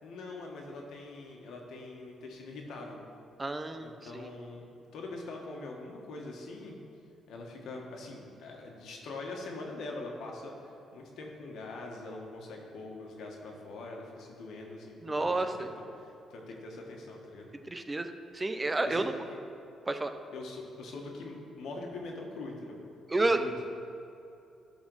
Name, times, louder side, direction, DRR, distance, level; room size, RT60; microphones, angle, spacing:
voice 1, 0.0-3.0 3.8-6.7 7.3-17.5 18.8-19.4 20.3-22.8 23.2-23.5, left 2 dB, 75° left, 0 dB, 1.6 m, -43 dB
voice 2, 3.4-4.3 15.0-15.7 17.7-19.1 19.9-20.1 23.1-23.4, right 2 dB, 20° right, 8 dB, 0.6 m, -30 dB
12.0 x 4.2 x 6.3 m, 2.7 s
cardioid pair, 90°, 0 cm